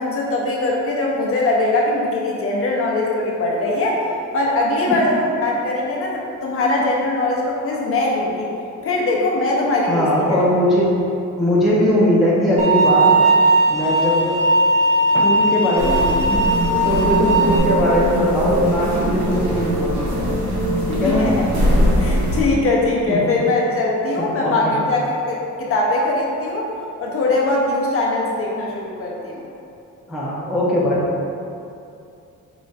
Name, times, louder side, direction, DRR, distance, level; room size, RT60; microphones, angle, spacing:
voice 1, 0.0-4.0 4.3-8.5 8.8-10.4 21.0-21.3 22.0-26.7 27.0-29.4, left 2 dB, 45° left, -3 dB, 0.6 m, -21 dB
voice 2, 9.9-10.9 11.4-13.2 13.7-14.4 15.1-16.5 16.8-20.4 20.9-21.3 23.1-23.2 24.2-24.8 30.1-31.1, equal, ahead, -7 dB, 0.4 m, -20 dB
sound 1, 12.6-17.6, right 2 dB, 25° right, 0.7 m, -17 dB
sound 2, 15.8-22.4, equal, 65° right, 0.8 m, -21 dB
4.7 x 2.1 x 4.0 m, 2.6 s
wide cardioid pair, 180°, 31 cm